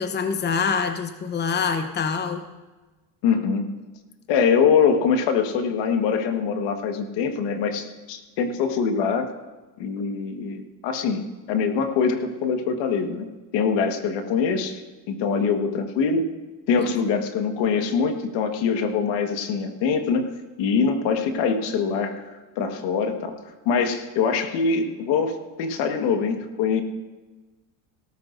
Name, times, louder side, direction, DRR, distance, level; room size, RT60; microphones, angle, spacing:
voice 1, 0.0-2.4 16.8-17.0, left 5 dB, 25° left, 8 dB, 0.9 m, -25 dB
voice 2, 3.2-3.7 4.3-9.3 9.8-11.2 11.5-13.3 13.5-14.8 15.1-16.3 16.7-20.3 20.6-22.3 22.6-23.3 23.6-26.8, left 6 dB, 70° left, 5 dB, 1.7 m, -23 dB
18.0 x 13.5 x 2.6 m, 1.2 s
supercardioid pair, 95°, 44 cm